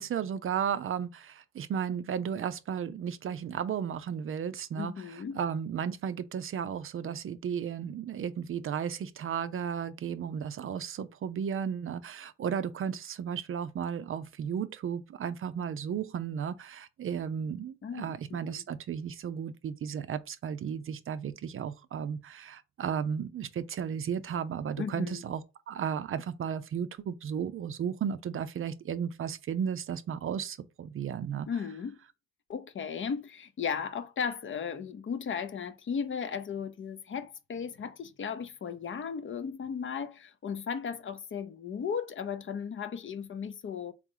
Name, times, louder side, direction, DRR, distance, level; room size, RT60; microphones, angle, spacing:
voice 1, 0.0-31.5, right 8 dB, 45° right, 0.5 m, -34 dB
voice 2, 4.8-5.4 17.8-18.6 24.8-25.2 31.5-32.0 32.5-43.9, left 6 dB, 40° left, 0.6 m, -36 dB
3.7 x 3.0 x 3.7 m
cardioid pair, 90°, 30 cm